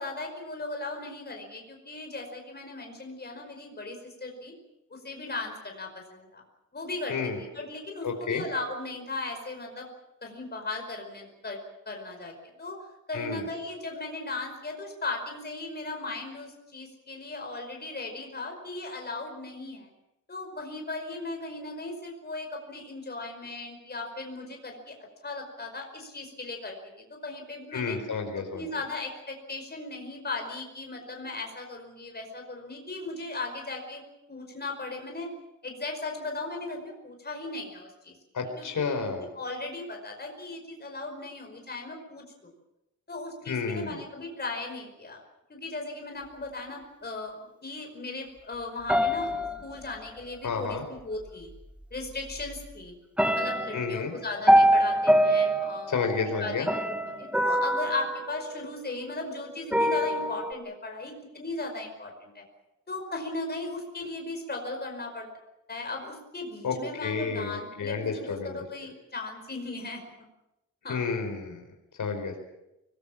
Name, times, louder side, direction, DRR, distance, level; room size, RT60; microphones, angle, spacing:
voice 1, 0.0-4.5 4.9-6.4 6.7-7.2 7.5-9.9 10.2-11.6 11.8-12.8 13.1-19.9 20.3-25.0 25.2-26.8 27.1-28.0 28.3-34.0 34.3-35.3 35.6-38.1 38.6-38.7 38.9-42.5 43.1-45.2 45.5-51.5 51.9-52.9 53.2-62.4 62.9-65.3 65.7-70.3 70.8-71.1, left 2 dB, 30° left, 2 dB, 5.1 m, -37 dB
voice 2, 8.0-8.4 13.1-13.4 27.7-28.6 38.3-39.3 43.5-44.0 50.4-50.8 53.7-54.1 55.9-56.7 66.6-66.8 67.0-68.6 70.9-71.6 72.0-72.4, left 5 dB, 80° left, 4 dB, 4.6 m, -30 dB
sound 1, 48.9-50.4 51.5-51.6 52.1-52.7 53.2-59.1 59.7-60.5, equal, 5° right, 1.5 m, -25 dB
25.5 x 20.5 x 7.3 m, 0.90 s
wide cardioid pair, 175°, 31 cm